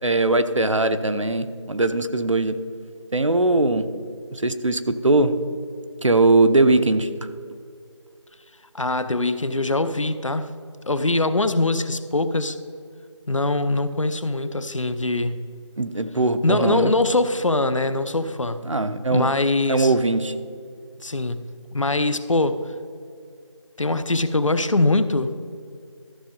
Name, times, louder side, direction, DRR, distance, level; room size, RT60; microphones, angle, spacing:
voice 1, 0.0-2.6 3.1-3.9 4.3-5.3 6.0-7.1 15.8-16.9 18.6-19.3 19.7-20.3, right 2 dB, 75° right, 10 dB, 0.8 m, -20 dB
voice 2, 8.7-10.5 10.9-12.6 13.3-15.4 16.4-18.7 19.1-19.9 21.0-22.7 23.8-25.3, left 2 dB, 80° left, 11 dB, 0.7 m, -22 dB
13.5 x 6.1 x 5.3 m, 2.3 s
figure-of-eight pair, 180°, 16 cm